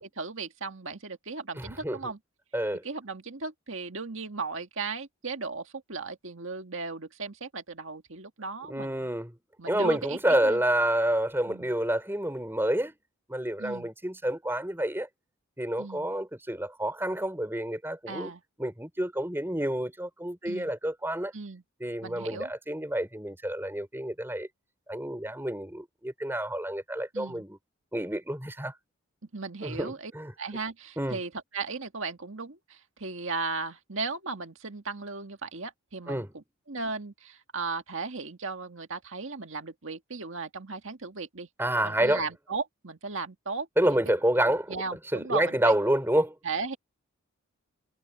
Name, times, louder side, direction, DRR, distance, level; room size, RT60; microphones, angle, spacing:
voice 1, 0.0-2.2 2.8-9.1 9.6-10.6 11.5-11.7 13.6-13.9 15.8-16.1 18.1-18.4 20.5-20.7 21.3-21.6 22.0-22.5 27.1-27.4 29.3-30.1 30.4-41.5 41.8-44.0 44.7-45.8 46.4-46.8, right 4 dB, 60° right, 1.9 m, -36 dB
voice 2, 1.5-2.0 2.5-2.8 8.7-9.3 9.7-12.9 13.3-15.1 15.6-18.3 18.6-21.3 21.8-24.5 24.9-27.6 27.9-28.7 29.6-30.3 31.0-31.2 36.1-36.3 41.6-42.2 43.8-44.7 45.1-46.3, right 1 dB, 10° right, 4.4 m, -28 dB
head